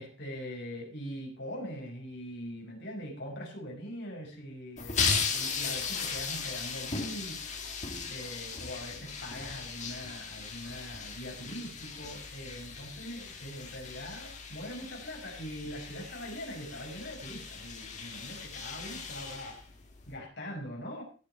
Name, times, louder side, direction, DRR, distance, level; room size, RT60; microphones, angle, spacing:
voice 1, 0.0-7.5 8.1-19.6 20.1-21.0, equal, 55° left, 0 dB, 5.1 m, -42 dB
sound 1, 4.8-20.2, left 5 dB, 35° left, 2.1 m, -37 dB
17.5 x 6.8 x 4.6 m, 0.37 s
head